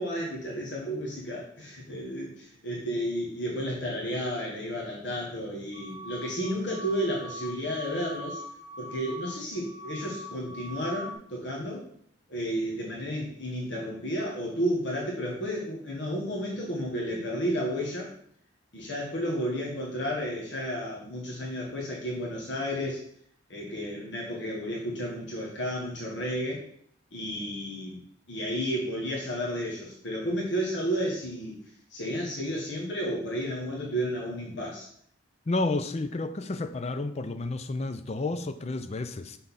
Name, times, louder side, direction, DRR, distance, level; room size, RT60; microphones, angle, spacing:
voice 1, 0.0-8.4 8.8-11.9 12.3-18.1 18.7-23.0 23.5-26.6 27.1-28.0 28.3-31.6 31.9-34.9, equal, 65° left, -3 dB, 1.4 m, -32 dB
sound 1, 5.7-11.1, equal, 35° right, 1.2 m, -42 dB
voice 2, 35.5-39.4, left 2 dB, 35° left, 10 dB, 0.5 m, -31 dB
6.1 x 3.9 x 5.6 m, 0.64 s
head